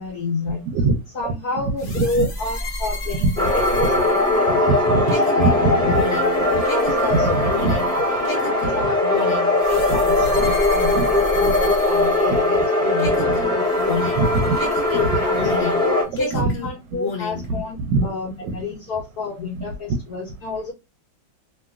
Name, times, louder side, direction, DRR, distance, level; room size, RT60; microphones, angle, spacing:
voice 1, 0.0-0.6 1.1-5.2 5.7-5.8 6.7-14.0 14.7-15.8 16.1-20.7, left 3 dB, 60° left, 1.2 m, -29 dB
voice 2, 0.7-1.6 2.0-2.3 3.2-3.3 4.9-5.0 5.4-5.9 6.4-6.6 7.1-7.7 9.9-10.0 10.3-10.5 10.9-11.0 12.3-12.4 13.0-13.4 14.2-14.6 14.9-15.5 16.1-16.5 17.3-18.1 18.4-18.6, right 3 dB, 75° right, 1.1 m, -23 dB
sound 1, 1.8-12.7 13.0-15.9 16.2-17.5, left 2 dB, 40° left, 1.0 m, -31 dB
sound 2, 3.4-16.0, left 2 dB, 5° left, 0.9 m, -20 dB
3.0 x 2.7 x 2.3 m
omnidirectional pair, 2.1 m